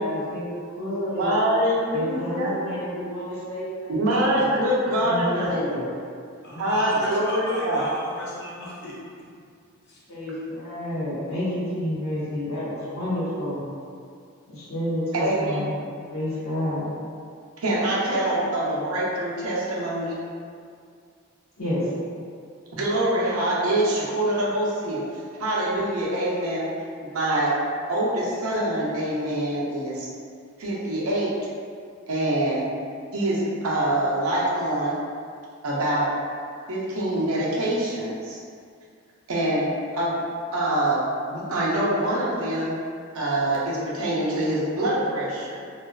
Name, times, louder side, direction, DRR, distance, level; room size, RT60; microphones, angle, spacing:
voice 1, 0.0-1.3 1.9-3.9 4.2-4.4 4.9-5.9 10.1-13.6 14.5-16.8 21.6-21.8, left 1 dB, 85° left, -10 dB, 1.0 m, -30 dB
voice 2, 1.2-2.5 3.9-5.6 6.6-7.8 15.1-15.6 17.6-20.2 22.7-25.0 25.4-26.7 27.0-27.5 27.9-30.1 30.6-31.3 32.1-32.7 33.1-35.0 35.6-36.1 36.7-38.4 39.3-39.6 39.9-40.1 40.5-42.7 43.1-45.6, right 1 dB, 85° right, -6 dB, 0.6 m, -24 dB
voice 3, 6.4-8.9 9.8-10.0, equal, 55° left, -6 dB, 0.6 m, -35 dB
2.4 x 2.2 x 2.2 m, 2.2 s
head